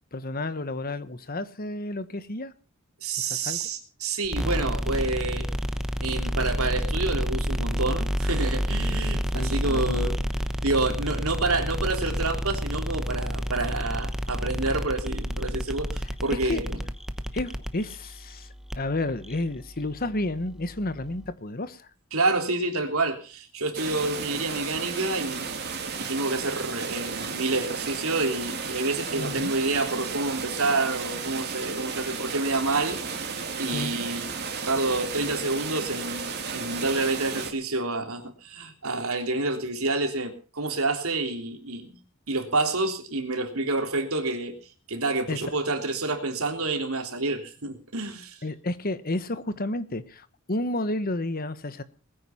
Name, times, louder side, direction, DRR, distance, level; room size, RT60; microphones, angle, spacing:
voice 1, 0.1-2.5 3.2-3.6 8.8-10.0 16.3-16.6 17.3-18.5 18.8-21.9 29.1-29.5 33.7-33.9 45.3-45.4 48.4-51.8, left 2 dB, 45° left, 1.3 m, -31 dB
voice 2, 3.0-5.5 6.0-10.1 10.6-16.8 22.1-25.4 26.0-34.3 34.7-42.0 42.3-44.5 44.9-48.4, right 2 dB, 85° right, 3.3 m, -28 dB
sound 1, 4.2-21.3, equal, 5° right, 1.0 m, -30 dB
sound 2, 23.7-37.5, right 5 dB, 50° right, 2.7 m, -33 dB
20.0 x 9.7 x 5.7 m
head